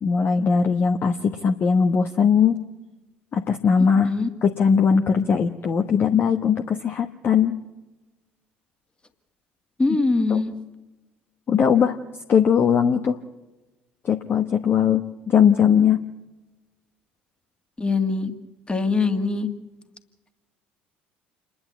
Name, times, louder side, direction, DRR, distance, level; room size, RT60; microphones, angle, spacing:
voice 1, 0.0-2.6 3.3-4.1 4.4-7.6 10.3-10.4 11.5-12.0 12.3-13.2 14.0-16.1, left 7 dB, 40° left, 6 dB, 1.2 m, -20 dB
voice 2, 9.8-10.5 17.8-18.3 18.7-19.5, left 3 dB, 20° left, 7 dB, 2.1 m, -22 dB
28.0 x 11.5 x 8.3 m, 1.1 s
hypercardioid pair, 60°, 5 cm